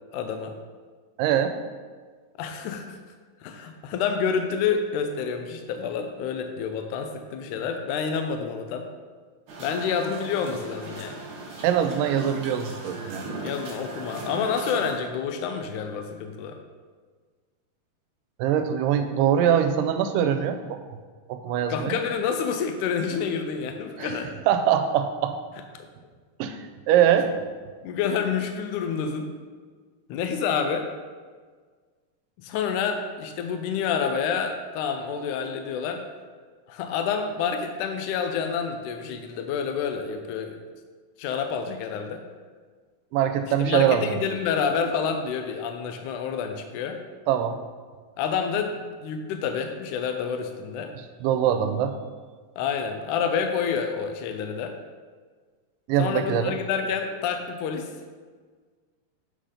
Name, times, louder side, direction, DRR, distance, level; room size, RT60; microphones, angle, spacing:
voice 1, 0.1-0.6 2.4-3.0 3.4-8.9 9.6-11.2 13.4-16.6 21.7-24.3 27.8-29.3 30.1-30.9 32.4-36.0 36.7-40.6 41.2-42.2 43.6-47.0 48.2-50.9 52.6-54.8 56.0-57.9, left 6 dB, 80° left, 5 dB, 1.9 m, -28 dB
voice 2, 1.2-1.5 11.6-13.3 18.4-20.8 21.3-22.0 24.0-24.1 24.5-25.4 26.4-27.3 43.1-44.2 47.3-47.6 50.9-52.0 55.9-56.6, right 9 dB, 85° right, 7 dB, 2.2 m, -23 dB
sound 1, 9.5-15.0, right 2 dB, 60° right, 1.3 m, -38 dB
8.2 x 3.9 x 5.0 m, 1.5 s
omnidirectional pair, 3.9 m